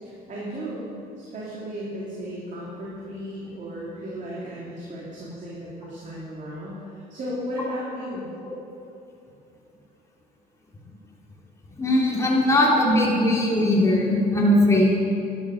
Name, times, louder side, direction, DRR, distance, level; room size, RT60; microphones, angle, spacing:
voice 1, 0.0-8.3, equal, 50° right, -6 dB, 2.9 m, -35 dB
voice 2, 11.8-14.9, left 1 dB, 15° left, -4 dB, 3.4 m, -19 dB
11.5 x 10.5 x 6.6 m, 2.6 s
cardioid pair, 110°, 17 cm